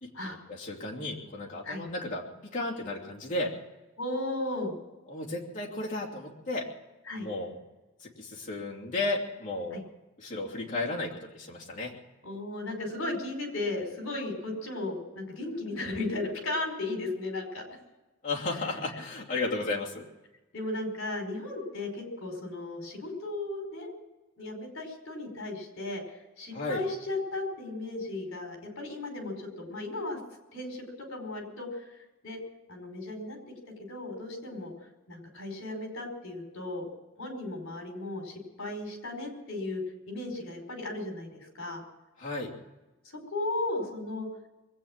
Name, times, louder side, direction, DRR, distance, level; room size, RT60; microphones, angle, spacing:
voice 1, 0.0-2.2 2.5-3.5 5.1-6.7 7.2-7.6 8.0-9.8 10.2-11.9 18.2-20.1 26.5-26.8 42.2-42.5, left 2 dB, 35° left, -4 dB, 2.8 m, -34 dB
voice 2, 4.0-4.7 7.1-7.3 9.7-9.8 12.2-17.6 20.5-23.9 24.4-30.2 30.5-30.8 31.1-32.0 32.2-32.4 32.7-33.4 33.8-34.7 35.1-36.8 37.2-41.8 43.0-44.3, left 2 dB, 60° left, 2 dB, 5.0 m, -35 dB
22.0 x 8.9 x 7.4 m, 1.1 s
head